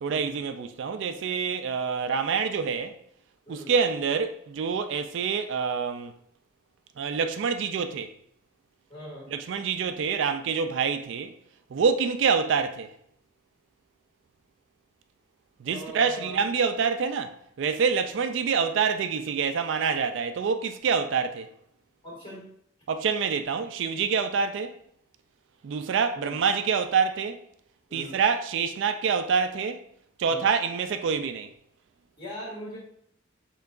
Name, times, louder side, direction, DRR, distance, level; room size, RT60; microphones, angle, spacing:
voice 1, 0.0-3.0 3.5-6.1 7.0-8.1 9.3-11.3 11.7-12.9 15.6-21.5 22.9-24.7 25.6-27.4 27.9-29.8 30.2-31.5, right 6 dB, 60° right, 0.3 m, -26 dB
voice 2, 8.9-9.3 15.7-16.4 22.0-22.4 26.2-26.4 27.9-28.2 30.3-30.5 32.2-32.8, equal, 25° left, 1.8 m, -40 dB
5.7 x 3.8 x 2.5 m
head